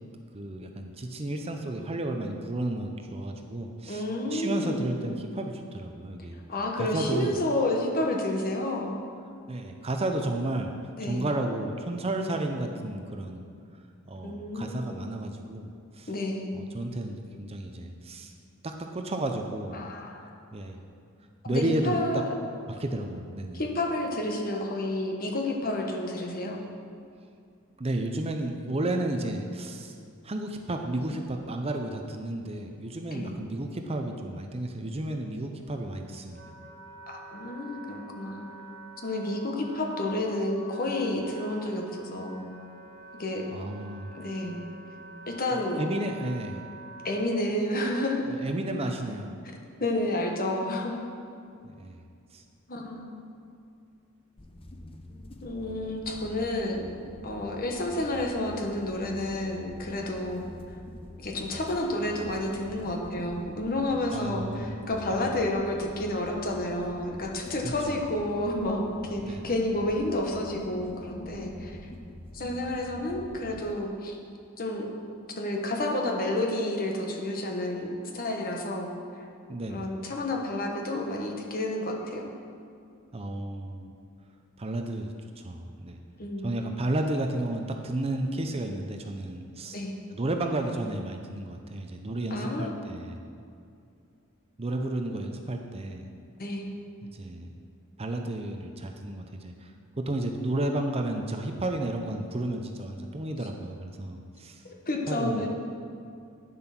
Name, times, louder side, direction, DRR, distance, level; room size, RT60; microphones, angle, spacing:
voice 1, 0.3-4.0 4.3-6.4 6.8-7.4 9.5-10.7 11.0-13.4 14.1-16.1 16.5-18.3 18.6-19.9 20.5-20.8 21.4-22.0 22.8-23.6 27.8-29.9 30.2-36.4 43.5-44.1 45.5-46.6 48.4-49.3 51.6-52.0 52.3-52.4 64.1-64.7 65.1-65.4 67.6-68.0 69.2-69.5 79.5-79.9 83.1-83.9 84.6-86.0 86.4-89.8 90.1-93.2 94.6-96.0 97.0-97.5 98.0-99.7 100.0-104.6 105.1-105.5, right 1 dB, 25° right, 4 dB, 0.6 m, -32 dB
voice 2, 3.9-4.9 6.5-9.0 11.0-11.2 14.2-15.0 16.1-16.5 19.7-20.3 21.4-22.3 23.5-26.6 33.1-33.4 37.1-38.5 39.0-42.4 43.2-43.5 44.1-44.6 45.3-45.8 47.0-48.3 49.8-50.9 52.7-53.1 55.4-56.8 57.2-60.4 61.2-71.8 72.3-74.2 74.6-74.9 75.4-78.9 79.7-82.3 86.2-86.5 89.7-89.9 92.3-92.7 96.4-96.7 104.6-105.5, left 1 dB, 40° left, 1 dB, 1.3 m, -30 dB
Wind instrument woodwind instrument, 35.9-47.3, right 2 dB, 55° right, 1.6 m, -47 dB
sound 1, 54.4-73.7, left 1 dB, 25° left, 0.6 m, -45 dB
9.9 x 7.5 x 5.9 m, 2.4 s
head